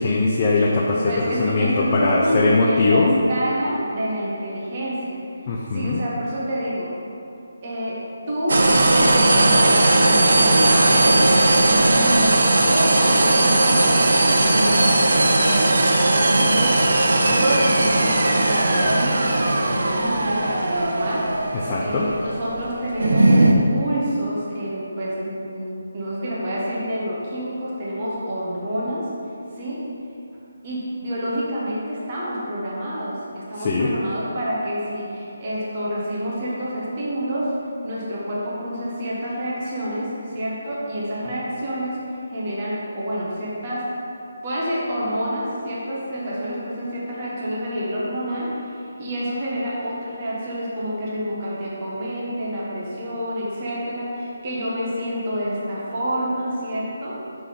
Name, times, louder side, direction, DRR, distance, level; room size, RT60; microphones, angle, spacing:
voice 1, 0.0-3.2 5.5-6.0 21.6-22.1 33.6-33.9, left 3 dB, 20° left, -3 dB, 0.4 m, -20 dB
voice 2, 1.0-6.9 7.6-8.0 8.3-11.2 11.8-21.2 21.8-29.1 29.5-29.8 30.6-37.5 37.8-43.9 44.4-57.2, equal, 25° right, -7 dB, 1.0 m, -28 dB
sound 1, 8.5-23.5, right 2 dB, 65° right, 0.6 m, -18 dB
5.9 x 3.7 x 4.9 m, 2.6 s
hypercardioid pair, 175°, 0 cm